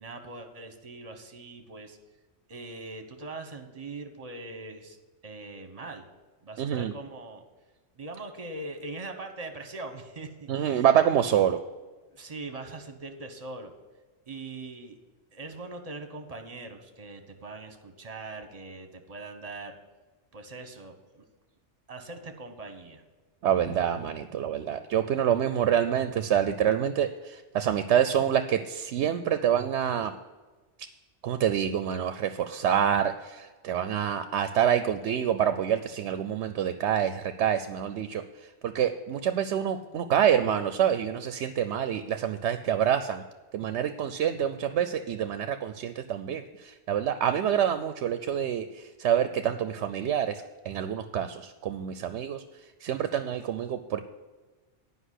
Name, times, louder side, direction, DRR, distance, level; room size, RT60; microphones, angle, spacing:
voice 1, 0.0-2.0 2.5-5.0 5.2-6.0 6.4-7.4 7.9-10.9 12.1-13.7 14.3-15.0 15.3-19.7 20.3-21.2 21.9-23.0, right 2 dB, 35° right, 6 dB, 1.1 m, -41 dB
voice 2, 6.6-6.9 10.5-11.6 23.4-30.1 31.2-38.2 38.6-43.2 43.5-52.4 52.8-54.0, right 9 dB, 80° right, 10 dB, 0.8 m, -27 dB
10.0 x 5.4 x 8.2 m, 1.3 s
omnidirectional pair, 1.1 m